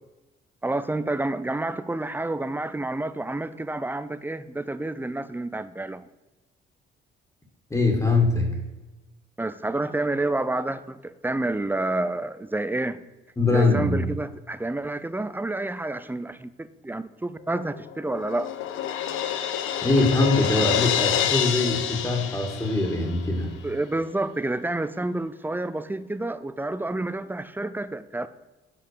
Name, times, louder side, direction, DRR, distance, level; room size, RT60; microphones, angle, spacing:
voice 1, 0.6-6.1 9.4-13.0 13.5-18.5 23.6-28.3, right 2 dB, 10° right, 0.5 m, -29 dB
voice 2, 7.7-8.5 13.4-14.0 19.8-23.5, left 2 dB, 15° left, 2.1 m, -22 dB
Crash cymbal, 17.5-23.2, left 10 dB, 85° left, 0.7 m, -28 dB
8.5 x 5.6 x 6.7 m
cardioid pair, 90°, 20 cm